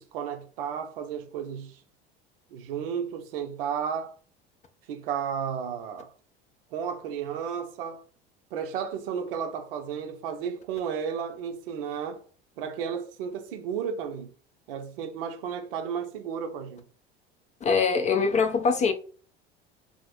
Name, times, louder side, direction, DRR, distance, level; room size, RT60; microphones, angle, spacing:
voice 1, 0.0-1.8 2.5-4.1 4.9-6.1 6.7-8.0 8.5-12.2 12.6-14.3 14.7-16.8, right 7 dB, 65° right, 0.6 m, -33 dB
voice 2, 17.6-18.9, left 5 dB, 25° left, 0.4 m, -23 dB
2.0 x 2.0 x 3.1 m
figure-of-eight pair, 70°, 30 cm